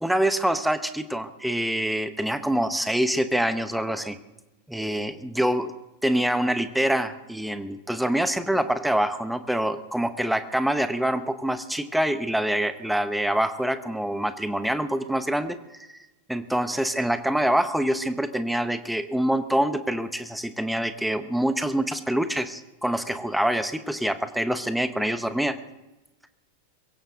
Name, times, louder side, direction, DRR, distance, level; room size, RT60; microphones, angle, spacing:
voice 1, 0.0-4.2 4.7-5.7 6.0-16.0 16.3-25.6, right 1 dB, ahead, 11 dB, 1.1 m, -25 dB
23.0 x 16.0 x 3.8 m, 1.0 s
figure-of-eight pair, 90°, 0 cm